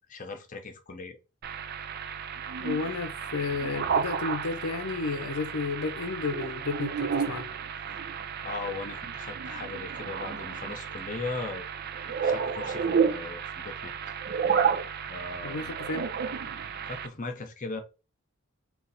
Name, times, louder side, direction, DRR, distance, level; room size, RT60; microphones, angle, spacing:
voice 1, 0.1-1.2 8.4-11.7 12.0-14.1 15.0-15.7 16.8-17.8, left 3 dB, 35° left, 0.8 m, -38 dB
sound 1, 1.4-17.1, right 6 dB, 45° right, 0.4 m, -32 dB
voice 2, 2.6-7.5 15.4-16.1, left 4 dB, 80° left, 0.6 m, -32 dB
3.8 x 2.4 x 4.1 m
head